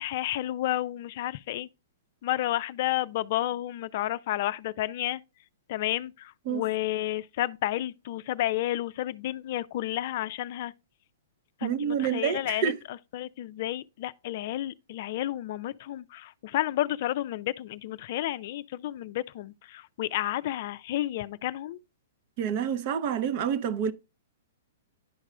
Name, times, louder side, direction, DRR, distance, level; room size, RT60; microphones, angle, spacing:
voice 1, 0.0-1.7 2.2-5.2 5.7-10.7 11.6-21.8, left 14 dB, 55° left, 0.4 m, -31 dB
voice 2, 11.6-12.8 22.4-23.9, right 8 dB, 50° right, 0.6 m, -28 dB
10.5 x 4.7 x 2.2 m
hypercardioid pair, 120°, 0 cm